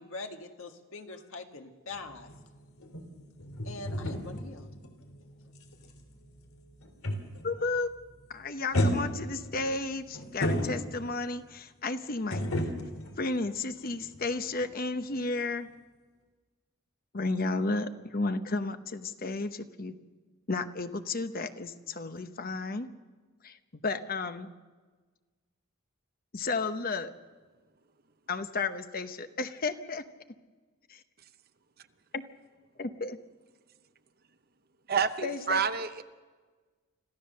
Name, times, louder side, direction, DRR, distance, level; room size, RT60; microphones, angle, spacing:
voice 1, 0.0-2.3 3.6-4.7, left 3 dB, 65° left, 4 dB, 1.7 m, -43 dB
sound 1, 1.9-7.6 7.9-8.2 8.7-11.2 12.3-14.2 14.5-14.7, equal, 85° left, 3.0 m, -33 dB
voice 2, 7.4-7.9 8.3-12.5 13.2-15.7 17.1-19.9 20.5-22.9 23.4-23.6 23.8-24.5 26.3-27.1 28.3-30.0 30.9-31.0 32.1-32.3 32.8-33.2 35.2-35.6, left 3 dB, 40° left, 9 dB, 0.9 m, -33 dB
voice 3, 34.9-36.0, right 6 dB, 45° right, 10 dB, 0.8 m, -28 dB
26.0 x 15.0 x 6.6 m, 1.4 s
head